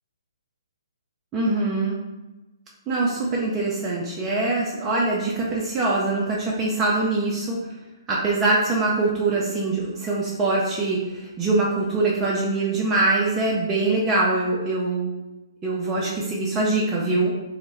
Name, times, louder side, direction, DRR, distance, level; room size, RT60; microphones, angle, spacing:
voice 1, 1.3-2.0 2.9-7.6 8.1-11.0 11.4-15.1 15.6-17.3, right 2 dB, 15° right, -5 dB, 0.3 m, -23 dB
2.1 x 2.0 x 3.0 m, 1.1 s
figure-of-eight pair, 130°, 2 cm